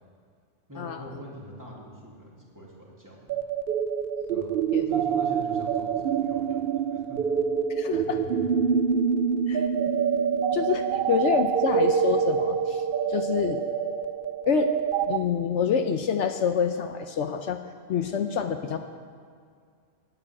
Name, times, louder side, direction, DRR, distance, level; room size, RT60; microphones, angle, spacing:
voice 1, 0.7-3.4 4.3-7.2 7.9-8.5, equal, 15° right, -4 dB, 2.4 m, -43 dB
sound 1, 3.3-15.2, right 7 dB, 60° right, 0.6 m, -26 dB
voice 2, 7.7-8.2 9.5-9.7 10.5-13.6 14.5-14.7 15.1-17.6 17.9-18.8, left 7 dB, 75° left, 7 dB, 0.9 m, -27 dB
9.2 x 8.9 x 8.6 m, 2.1 s
omnidirectional pair, 1.3 m